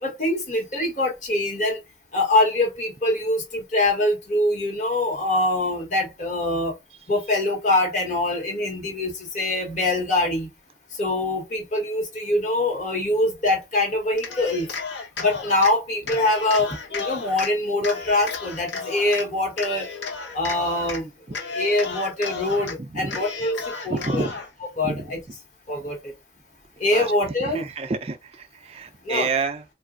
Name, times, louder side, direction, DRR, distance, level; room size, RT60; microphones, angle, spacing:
voice 1, 0.0-1.8 2.1-6.7 7.1-10.5 11.0-14.7 15.2-19.9 20.3-21.1 21.5-24.3 24.8-25.2 25.7-26.0 26.8-27.6 29.1-29.3, left 1 dB, 45° left, 1.2 m, -24 dB
Cheering, 14.1-15.7 16.1-17.5 17.8-19.2 19.6-21.0 21.3-22.7 23.1-24.5, left 5 dB, 85° left, 0.9 m, -33 dB
voice 2, 22.8-23.2 23.9-24.4 24.8-25.0 25.8-25.9 26.9-27.1 27.4-29.6, right 4 dB, 35° right, 0.4 m, -29 dB
3.9 x 2.4 x 2.4 m
head